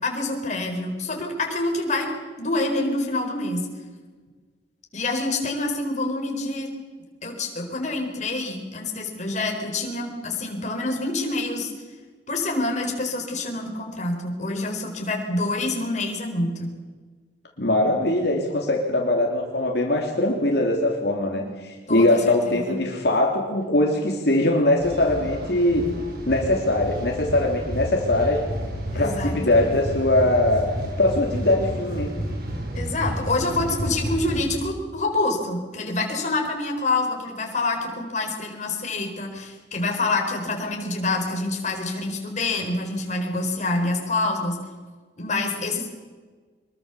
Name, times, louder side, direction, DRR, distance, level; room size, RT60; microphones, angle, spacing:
voice 1, 0.0-2.1 2.4-3.7 4.9-6.7 7.2-11.7 12.3-16.7 21.3-21.4 21.9-22.8 28.9-29.6 32.7-44.6 45.2-45.9, left 2 dB, 40° left, 2 dB, 4.5 m, -27 dB
voice 2, 17.6-25.9 26.3-28.4 28.9-30.7 31.0-32.1, left 1 dB, 65° left, 0 dB, 3.2 m, -21 dB
sound 1, 24.8-34.4, equal, 55° right, 5.8 m, -31 dB
24.5 x 22.5 x 7.1 m, 1.4 s
head